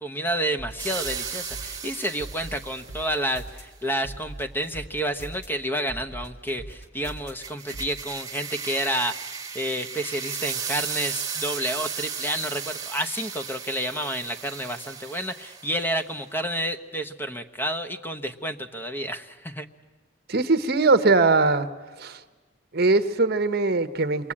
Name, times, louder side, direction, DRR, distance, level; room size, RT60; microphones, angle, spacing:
voice 1, 0.0-19.7, equal, 10° left, 8 dB, 1.1 m, -30 dB
sound 1, 0.6-1.8 2.2-3.6 4.0-5.5 5.9-7.3 7.7-7.9, right 1 dB, 60° left, 3.4 m, -40 dB
sound 2, 0.8-3.1 7.1-16.0, right 6 dB, 20° right, 1.9 m, -35 dB
voice 2, 20.3-21.7 22.0-22.2 22.7-24.3, right 3 dB, 55° right, 11 dB, 1.2 m, -21 dB
27.0 x 22.5 x 8.7 m, 1.3 s
head